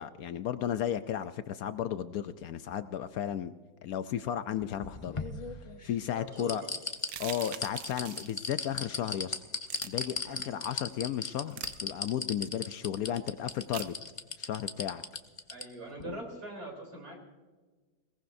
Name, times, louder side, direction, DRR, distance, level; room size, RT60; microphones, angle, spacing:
voice 1, 0.0-3.5 3.8-5.2 5.8-6.6 7.2-9.3 9.8-13.9 14.4-15.0 16.0-16.2, left 10 dB, 80° left, 12 dB, 0.8 m, -34 dB
sound 1, 4.6-5.9 6.4-15.6 16.0-16.1, left 3 dB, 45° left, 0.4 m, -36 dB
voice 2, 6.1-6.7 10.2-10.5 15.5-17.2, right 2 dB, 55° right, 0 dB, 4.2 m, -43 dB
sound 2, 7.0-8.4 9.7-9.9 11.5-11.7 13.7-13.9, right 10 dB, 85° right, 1.6 m, -42 dB
21.5 x 18.5 x 2.6 m, 1.3 s
omnidirectional pair, 2.1 m